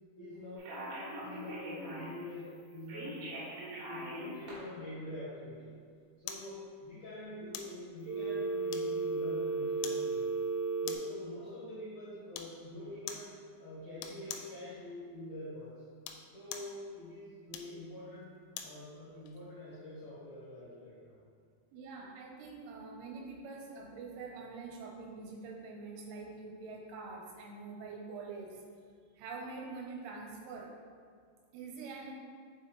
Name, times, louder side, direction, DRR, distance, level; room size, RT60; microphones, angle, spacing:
voice 1, 0.2-0.9 1.2-5.7 6.2-10.4 10.8-13.3 13.6-15.7 16.3-18.3 18.6-21.2, left 1 dB, 65° left, -10 dB, 1.7 m, -46 dB
Telephone, 0.6-2.2 2.9-4.5 8.1-11.0, right 4 dB, 65° right, 3.8 m, -36 dB
sound 1, 6.3-6.5 7.5-7.8 8.7-9.2 9.8-10.1 10.9-11.2 12.3-12.6 13.1-13.3 14.0-14.6 15.9-16.8 17.5-18.8 19.3-19.4, left 8 dB, 90° left, 3.0 m, -44 dB
voice 2, 21.7-28.6 29.2-30.7 31.5-32.1, right 4 dB, 85° right, 0 dB, 3.3 m, -45 dB
8.4 x 4.6 x 3.1 m, 2.1 s
omnidirectional pair, 5.4 m